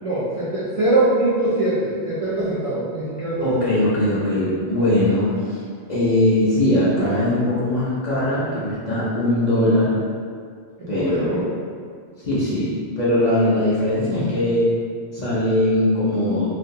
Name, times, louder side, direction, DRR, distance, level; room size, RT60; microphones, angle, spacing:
voice 1, 0.0-3.5 10.8-11.5, right 2 dB, 65° right, -9 dB, 0.3 m, -22 dB
voice 2, 3.4-5.6 5.9-9.9 10.9-11.4 12.2-14.6 15.1-16.5, left 1 dB, 50° left, -9 dB, 0.5 m, -20 dB
2.5 x 2.1 x 2.6 m, 2.1 s
omnidirectional pair, 1.2 m